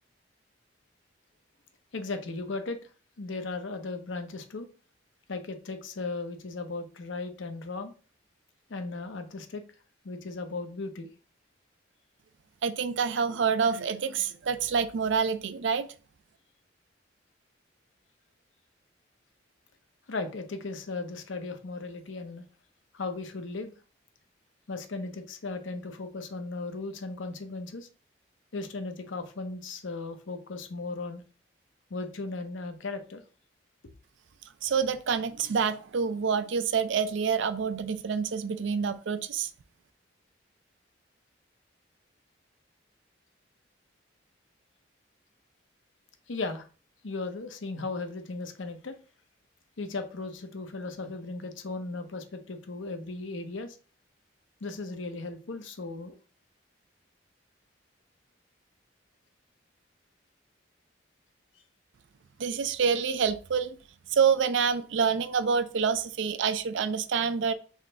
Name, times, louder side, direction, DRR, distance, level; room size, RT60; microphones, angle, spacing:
voice 1, 1.9-2.8 3.2-4.7 5.3-7.9 8.7-9.6 10.0-11.1 20.1-22.4 22.9-23.7 24.7-27.9 28.5-31.2 31.9-33.2 46.3-46.7 47.0-49.0 49.8-53.8 54.6-56.1, left 3 dB, 85° left, 0.7 m, -36 dB
voice 2, 12.6-15.9 34.6-39.5 62.4-63.8 64.1-67.5, right 6 dB, 75° right, 0.4 m, -27 dB
3.7 x 3.3 x 3.9 m
head